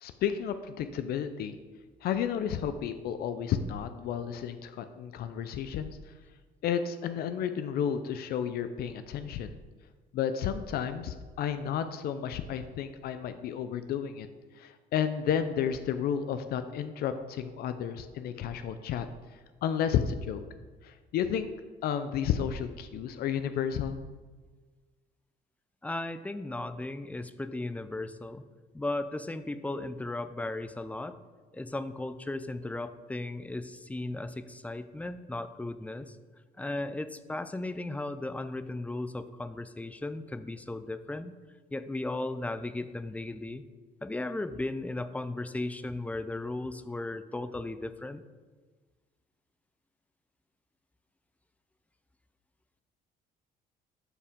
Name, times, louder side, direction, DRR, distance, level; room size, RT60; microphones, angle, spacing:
voice 1, 0.0-1.6 2.0-6.0 6.6-9.6 10.1-14.3 14.6-19.1 19.6-20.4 20.8-21.5 21.8-24.0, left 8 dB, 65° left, 10 dB, 0.5 m, -32 dB
voice 2, 25.8-28.4 28.7-31.2 31.5-36.2 36.6-41.3 41.7-43.6 44.0-48.2, left 2 dB, 10° left, 12 dB, 0.4 m, -36 dB
12.0 x 4.5 x 3.6 m, 1.4 s
cardioid pair, 110°, 17 cm